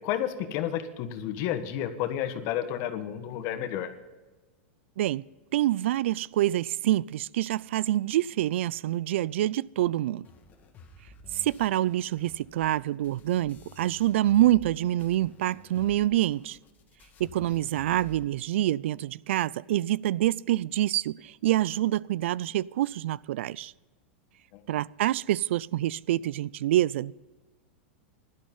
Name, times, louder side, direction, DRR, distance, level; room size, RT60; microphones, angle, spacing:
voice 1, 0.0-3.9 24.5-24.6, left 10 dB, 45° left, 1.5 m, -31 dB
voice 2, 5.5-10.3 11.4-16.6 17.2-23.7 24.7-27.1, right 14 dB, 75° right, 0.4 m, -26 dB
sound 1, 10.2-14.7 15.0-18.2, left 2 dB, 25° left, 1.9 m, -52 dB
16.5 x 12.0 x 5.5 m
supercardioid pair, 140°, 7 cm